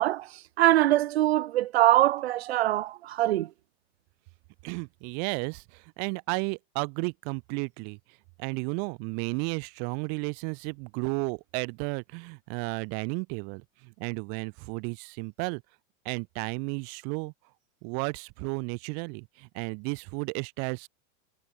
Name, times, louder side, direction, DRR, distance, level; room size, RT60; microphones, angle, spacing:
voice 1, 0.0-3.5, right 14 dB, 50° right, 0.6 m, -23 dB
voice 2, 4.6-8.0 8.4-15.6 16.0-17.3 17.8-20.9, right 40 dB or more, 20° right, 1.0 m, -33 dB
supercardioid pair, 180°, 42 cm